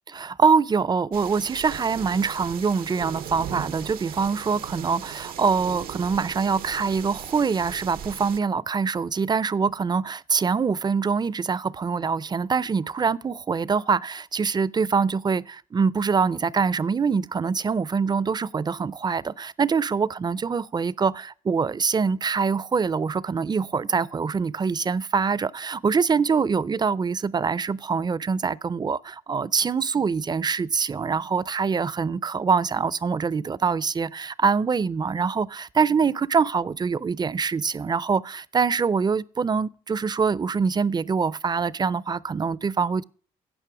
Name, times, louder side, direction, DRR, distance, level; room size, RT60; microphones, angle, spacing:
voice 1, 0.1-43.0, right 5 dB, 30° right, 0.5 m, -24 dB
sound 1, 1.1-8.4, right 10 dB, 70° right, 0.7 m, -38 dB
16.0 x 5.4 x 4.8 m
supercardioid pair, 60°, 15 cm